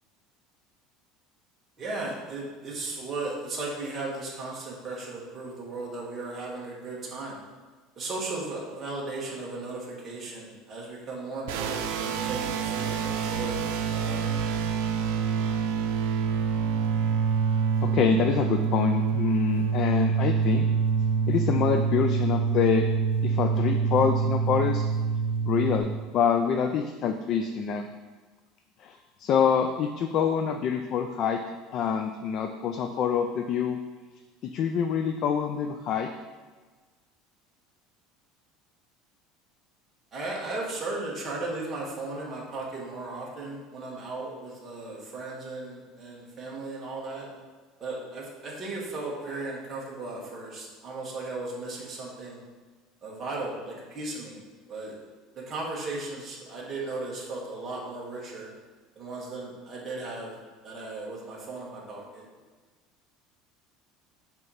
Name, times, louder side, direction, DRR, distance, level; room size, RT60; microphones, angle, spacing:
voice 1, 1.8-7.4 8.0-14.4 40.1-47.3 47.8-52.4 53.0-54.4 54.7-54.9 55.3-58.5 58.9-60.3 60.6-62.2, right 2 dB, 20° right, -4 dB, 1.4 m, -36 dB
sound 1, 11.5-25.8, right 6 dB, 80° right, 0.6 m, -26 dB
voice 2, 17.8-20.7 21.3-22.9 23.2-24.9 25.5-25.9 26.1-27.9 28.8-31.4 31.7-33.8 34.4-36.1, left 7 dB, 35° left, 6 dB, 0.3 m, -26 dB
7.6 x 3.0 x 5.5 m, 1.4 s
cardioid pair, 175°, 0 cm